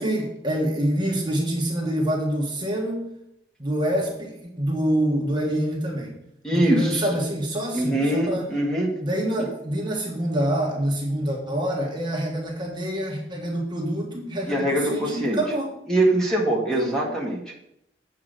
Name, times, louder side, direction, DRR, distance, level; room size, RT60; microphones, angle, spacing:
voice 1, 0.0-3.2 3.6-6.1 6.5-8.5 9.0-15.7 16.7-17.1, right 1 dB, 25° right, -1 dB, 1.6 m, -26 dB
voice 2, 6.4-7.0 7.7-8.9 9.4-9.5 14.5-15.4 15.9-17.6, right 1 dB, 5° left, -3 dB, 1.8 m, -23 dB
8.2 x 4.9 x 6.7 m, 0.80 s
head